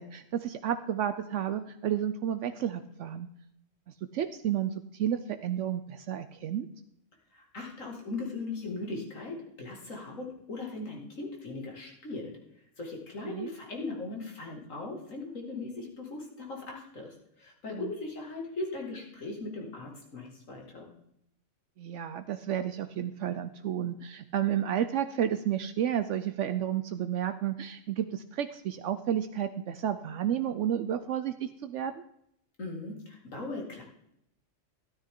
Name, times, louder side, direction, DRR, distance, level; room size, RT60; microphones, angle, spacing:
voice 1, 0.0-3.3 4.1-6.7 13.2-13.5 17.7-17.9 21.8-31.9, right 10 dB, 70° right, 9 dB, 0.9 m, -31 dB
voice 2, 7.3-12.3 12.8-20.9 32.6-33.8, left 3 dB, 75° left, 0 dB, 2.7 m, -39 dB
13.5 x 11.5 x 3.7 m, 0.76 s
omnidirectional pair, 1.3 m